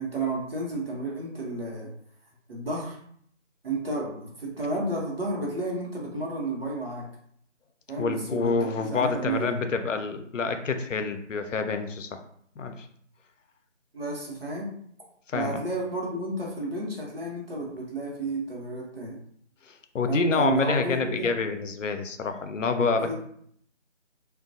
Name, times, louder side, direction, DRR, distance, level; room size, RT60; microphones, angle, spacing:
voice 1, 0.0-1.9 2.5-3.0 3.6-7.0 7.9-8.5 8.8-9.6 13.9-14.7 15.3-19.2 20.1-21.3 22.8-23.1, right 2 dB, 50° right, -3 dB, 0.8 m, -31 dB
voice 2, 8.0-12.2 12.6-12.9 15.3-15.6 19.7-23.1, left 4 dB, 85° left, 8 dB, 0.5 m, -27 dB
2.4 x 2.2 x 2.6 m, 0.65 s
figure-of-eight pair, 165°, 37 cm